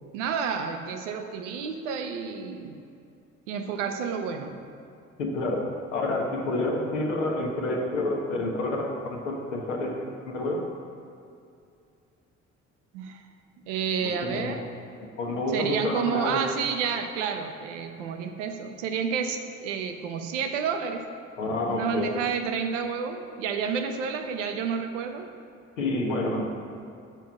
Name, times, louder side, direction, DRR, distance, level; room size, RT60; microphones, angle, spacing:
voice 1, 0.1-2.8 3.5-4.6 12.9-13.2 13.7-14.6 15.5-21.1 21.7-25.3, right 6 dB, 70° right, 6 dB, 0.7 m, -30 dB
voice 2, 5.2-5.6 5.9-10.6 14.0-14.6 15.2-16.4 21.4-22.3 25.8-26.4, left 2 dB, 75° left, 0 dB, 1.0 m, -28 dB
6.8 x 4.6 x 6.1 m, 2.5 s
figure-of-eight pair, 45°, 38 cm